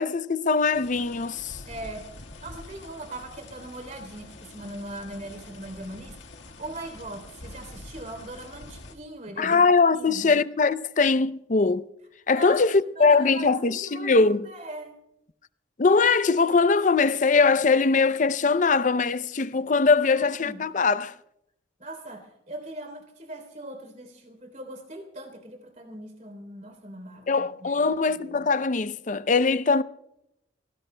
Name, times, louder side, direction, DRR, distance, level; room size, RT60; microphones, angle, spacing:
voice 1, 0.0-1.6 9.4-11.8 12.3-14.4 15.8-21.1 27.3-29.8, left 4 dB, 40° left, 0.5 m, -21 dB
sound 1, 0.7-8.9, left 2 dB, 75° left, 1.6 m, -45 dB
voice 2, 1.7-2.1 2.4-9.7 9.9-10.4 12.3-12.6 13.0-15.0 19.5-19.7 20.1-20.7 21.8-28.5, right 1 dB, 40° right, 3.3 m, -40 dB
30.0 x 18.5 x 2.2 m
head